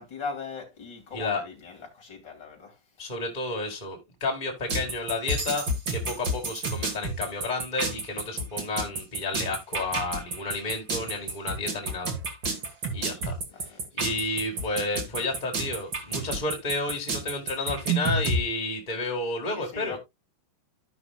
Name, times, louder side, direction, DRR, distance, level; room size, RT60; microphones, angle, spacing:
voice 1, 0.0-2.8 13.0-13.8 19.5-20.0, left 5 dB, 30° left, 2.9 m, -40 dB
voice 2, 3.0-12.1 12.9-13.4 13.9-20.0, left 2 dB, 75° left, 0.4 m, -31 dB
sound 1, 4.7-18.4, right 2 dB, 55° right, 1.2 m, -30 dB
15.0 x 5.9 x 2.3 m
omnidirectional pair, 4.8 m